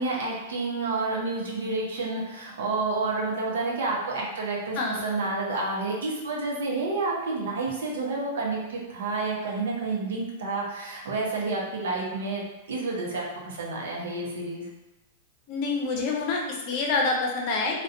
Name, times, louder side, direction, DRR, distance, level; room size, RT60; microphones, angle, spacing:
voice 1, 0.0-12.4 12.7-14.7, right 3 dB, 75° right, -3 dB, 0.7 m, -29 dB
voice 2, 15.5-17.8, left 3 dB, 50° left, 0 dB, 0.6 m, -27 dB
2.4 x 2.2 x 2.5 m, 1.0 s
hypercardioid pair, 110°, 0 cm